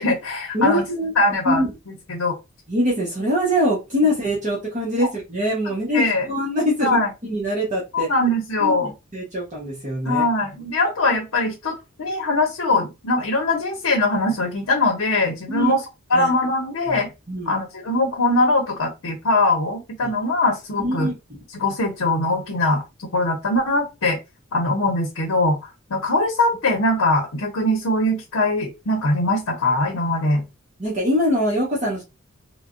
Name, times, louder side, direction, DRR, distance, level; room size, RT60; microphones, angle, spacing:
voice 1, 0.0-0.8 1.2-2.3 5.0-5.1 5.9-6.3 6.8-7.1 7.9-8.9 10.0-15.8 16.1-17.1 17.5-21.1 21.5-22.8 23.1-24.2 24.5-30.4, left 2 dB, 85° left, 2 dB, 0.8 m, -21 dB
voice 2, 0.5-1.1 1.4-1.7 2.7-8.1 8.6-10.2 15.5-15.7 16.1-16.3 16.9-17.0 17.3-17.5 20.0-20.1 20.8-21.4 30.8-32.0, equal, 35° right, -4 dB, 1.0 m, -23 dB
3.3 x 2.2 x 2.5 m, 0.25 s
head